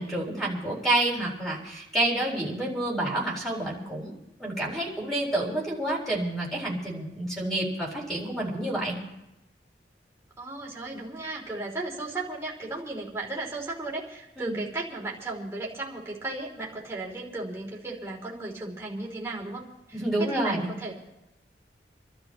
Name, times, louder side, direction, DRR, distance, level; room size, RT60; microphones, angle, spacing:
voice 1, 0.0-4.1 4.4-9.0 14.4-14.6 19.9-20.7, right 1 dB, ahead, -4 dB, 4.4 m, -29 dB
voice 2, 10.4-21.1, right 2 dB, 15° right, -4 dB, 3.3 m, -35 dB
29.0 x 12.5 x 3.1 m, 0.92 s
head